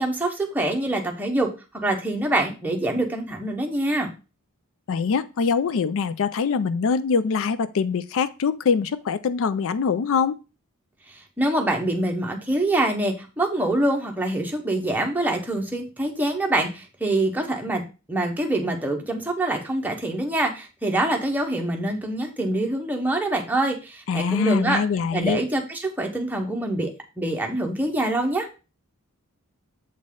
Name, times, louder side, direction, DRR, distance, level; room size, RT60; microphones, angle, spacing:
voice 1, 0.0-1.5 1.7-4.1 11.4-17.8 18.1-24.8 25.1-26.9 27.2-28.5, right 1 dB, 10° right, 1.0 m, -25 dB
voice 2, 4.9-10.4 24.1-25.4, left 5 dB, 65° left, 0.4 m, -23 dB
7.4 x 4.0 x 3.7 m
head